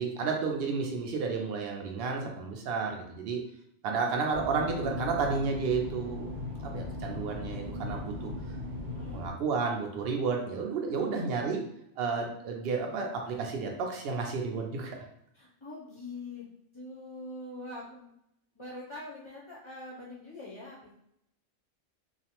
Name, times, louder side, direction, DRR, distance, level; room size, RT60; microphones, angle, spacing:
voice 1, 0.0-3.4 3.8-6.3 6.6-8.6 9.1-11.6 12.0-15.1, right 4 dB, 65° right, 2 dB, 0.7 m, -32 dB
sound 1, 4.3-9.3, left 2 dB, 85° right, 1.0 m, -38 dB
voice 2, 8.9-9.2 10.9-11.2 15.3-16.5 16.7-18.1 18.5-20.9, left 2 dB, 40° left, -6 dB, 0.4 m, -44 dB
2.5 x 2.0 x 2.8 m, 0.76 s
omnidirectional pair, 1.2 m